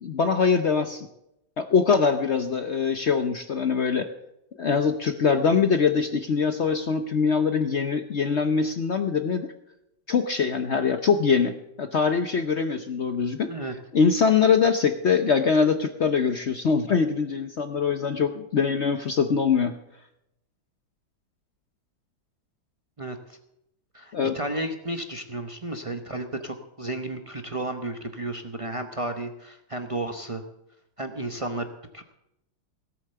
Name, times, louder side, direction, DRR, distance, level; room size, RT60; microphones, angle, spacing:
voice 1, 0.0-1.1 1.6-4.1 4.6-9.5 10.1-13.5 13.9-19.7 24.1-24.4, left 5 dB, 65° left, 8 dB, 0.6 m, -23 dB
voice 2, 23.0-23.4 23.9-30.4 31.0-31.7 31.9-32.0, right 2 dB, 45° right, 6 dB, 0.4 m, -33 dB
17.5 x 8.4 x 6.7 m, 0.83 s
omnidirectional pair, 2.1 m